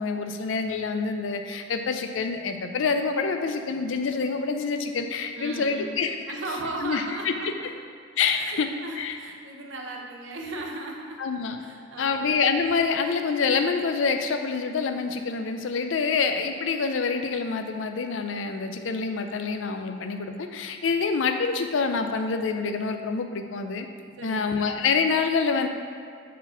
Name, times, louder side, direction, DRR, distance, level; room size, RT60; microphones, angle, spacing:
voice 1, 0.0-6.2 6.8-7.3 8.2-8.7 9.0-9.2 11.2-11.6 12.0-23.9 24.2-25.7, left 5 dB, 75° left, 6 dB, 0.5 m, -26 dB
voice 2, 5.4-6.0 6.3-7.7 8.3-11.2 11.6-12.4 24.2-24.6, right 2 dB, 70° right, 1 dB, 0.8 m, -36 dB
4.6 x 4.1 x 5.6 m, 2.4 s
head